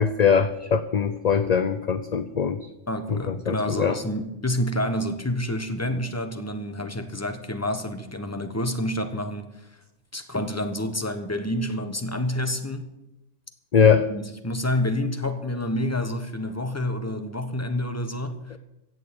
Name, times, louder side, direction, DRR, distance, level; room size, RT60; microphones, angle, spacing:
voice 1, 0.0-2.7 3.1-4.0 13.7-14.0, left 6 dB, 45° left, 11 dB, 0.6 m, -21 dB
voice 2, 2.9-9.7 10.1-12.9 13.7-18.6, left 1 dB, 15° left, 8 dB, 1.2 m, -28 dB
16.0 x 7.3 x 8.6 m, 0.92 s
omnidirectional pair, 1.3 m